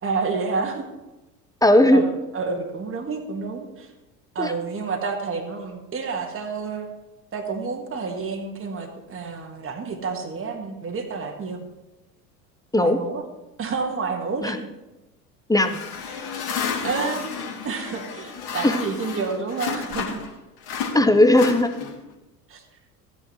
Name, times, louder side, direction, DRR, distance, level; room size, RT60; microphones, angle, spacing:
voice 1, 0.0-0.9 1.9-3.9 4.4-6.9 7.3-11.7 12.7-13.2 13.6-14.7 16.8-20.2 22.5-22.6, right 4 dB, 25° right, 3 dB, 1.8 m, -29 dB
voice 2, 1.6-2.1 4.4-4.5 12.7-13.0 14.4-14.6 15.5-15.8 18.6-18.8 20.9-21.7, left 1 dB, 5° left, 8 dB, 0.8 m, -17 dB
sound 1, 15.6-20.3 20.6-22.1, left 6 dB, 50° left, 2.2 m, -31 dB
15.0 x 9.5 x 3.1 m, 1.0 s
figure-of-eight pair, 70°, 48 cm